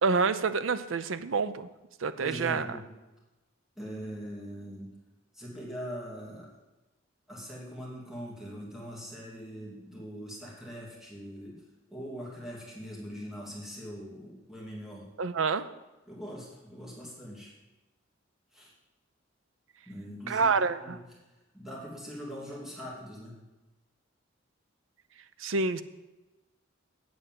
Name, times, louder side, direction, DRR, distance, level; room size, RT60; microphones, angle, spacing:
voice 1, 0.0-1.7 2.0-2.8 15.2-15.7 20.3-21.0 25.4-25.8, right 4 dB, 80° right, 12 dB, 0.6 m, -27 dB
voice 2, 2.2-2.8 3.8-4.9 5.3-6.5 7.3-11.6 11.9-15.0 16.1-17.5 18.5-18.7 19.9-20.5 20.8-21.0 21.5-23.4, equal, ahead, -5 dB, 2.8 m, -42 dB
8.0 x 8.0 x 7.5 m, 1.1 s
head